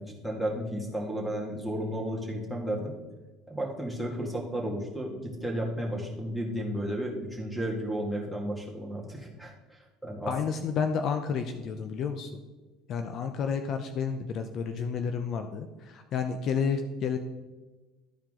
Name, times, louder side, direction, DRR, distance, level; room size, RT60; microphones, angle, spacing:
voice 1, 0.0-2.9 3.5-10.3, right 1 dB, 5° left, 0 dB, 2.1 m, -33 dB
voice 2, 10.3-12.4 12.9-17.2, left 6 dB, 50° left, 7 dB, 0.6 m, -31 dB
12.5 x 4.6 x 3.8 m, 1.2 s
supercardioid pair, 105°, 0 cm